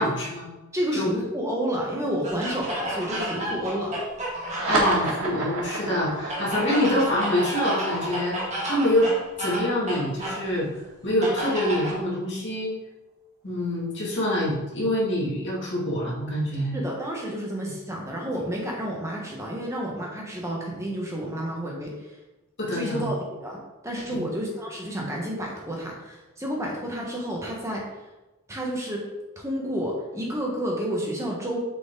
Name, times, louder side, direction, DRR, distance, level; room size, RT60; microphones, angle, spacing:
voice 1, 0.0-0.5 0.9-1.1 4.7-8.4 8.7-9.1 9.4-10.7 11.0-12.7 13.4-16.8 17.6-17.7 22.7-23.1 24.1-24.3, left 1 dB, 50° left, -5 dB, 2.2 m, -25 dB
voice 2, 0.7-3.9 16.7-21.9 22.7-23.6 23.8-27.8 28.5-29.0 29.4-31.6, equal, 15° right, -2 dB, 1.3 m, -30 dB
sound 1, 2.2-5.2 6.3-10.4 11.2-12.0, right 1 dB, 30° right, 1.5 m, -31 dB
sound 2, 4.4-11.3, right 2 dB, 75° right, 1.6 m, -32 dB
6.9 x 5.0 x 3.9 m, 1.1 s
head